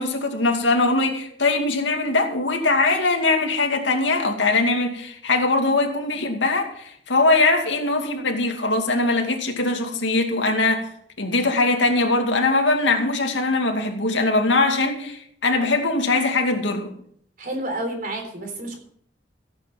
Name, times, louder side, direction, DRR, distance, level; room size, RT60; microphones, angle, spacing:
voice 1, 0.0-10.9 11.2-16.9, left 3 dB, 90° left, 3 dB, 2.4 m, -21 dB
voice 2, 17.4-18.8, right 1 dB, 45° right, 3 dB, 3.8 m, -30 dB
15.5 x 8.5 x 5.9 m, 0.65 s
head